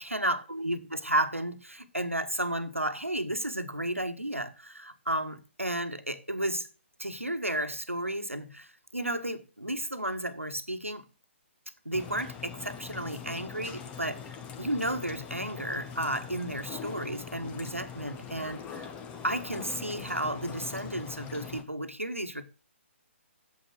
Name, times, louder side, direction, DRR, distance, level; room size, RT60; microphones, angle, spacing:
voice 1, 0.0-6.7 7.0-11.0 11.8-18.9 19.2-22.4, right 1 dB, 90° right, 1.5 m, -33 dB
sound 1, 11.9-21.6, left 7 dB, 15° left, 1.1 m, -42 dB
8.6 x 7.7 x 6.1 m
figure-of-eight pair, 135°, 7 cm